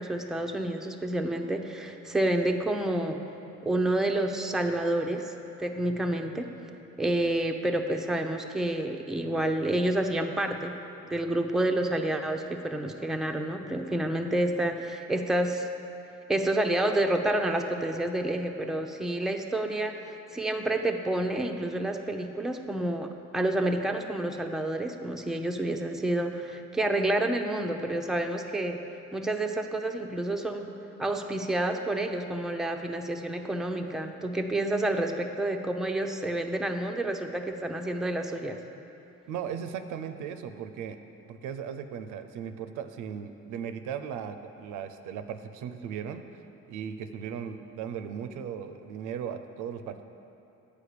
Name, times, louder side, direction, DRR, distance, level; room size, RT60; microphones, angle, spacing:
voice 1, 0.0-3.2 3.6-5.3 5.6-6.5 7.0-10.7 11.1-15.7 16.3-28.8 29.1-30.7 31.0-38.6, right 1 dB, ahead, 3 dB, 0.5 m, -29 dB
voice 2, 39.3-41.0 41.3-46.2 46.7-50.0, right 8 dB, 90° right, 9 dB, 0.5 m, -37 dB
8.5 x 5.0 x 6.6 m, 2.8 s
cardioid pair, 90°, 30 cm